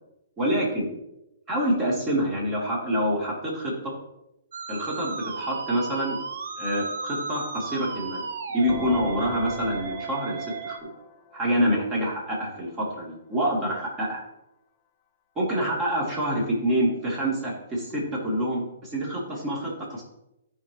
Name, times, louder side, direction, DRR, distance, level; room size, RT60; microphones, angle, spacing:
voice 1, 0.4-0.9 1.5-3.9 4.7-6.2 6.6-8.3 8.5-10.9 11.3-14.2 15.3-20.0, equal, 20° right, -4 dB, 3.2 m, -26 dB
Musical instrument, 4.5-10.8, right 4 dB, 70° right, 0.9 m, -35 dB
sound 1, 8.7-12.4, left 5 dB, 25° left, 0.9 m, -41 dB
15.0 x 5.5 x 3.1 m, 0.89 s
hypercardioid pair, 145°, 0 cm